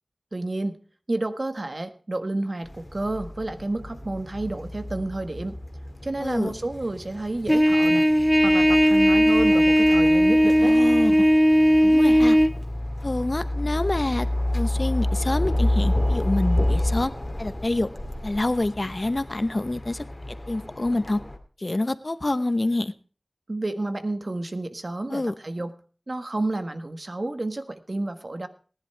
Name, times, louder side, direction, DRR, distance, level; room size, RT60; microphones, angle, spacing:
voice 1, 0.3-0.8 1.1-5.6 6.0-8.1 8.4-10.7 23.5-25.7 26.1-28.5, right 2 dB, 55° right, 9 dB, 1.5 m, -30 dB
sound 1, 2.7-21.4, left 1 dB, 30° left, 2.3 m, -30 dB
voice 2, 6.2-6.5 10.6-11.3 11.8-12.4 13.0-14.3 14.5-17.1 17.4-17.9 18.2-20.0 20.5-21.2 21.6-22.9 25.1-25.3, left 2 dB, 50° left, 13 dB, 0.9 m, -26 dB
Trumpet, 7.5-12.5, equal, ahead, 1.4 m, -17 dB
19.0 x 11.0 x 3.3 m, 0.38 s
wide cardioid pair, 55°, 0 cm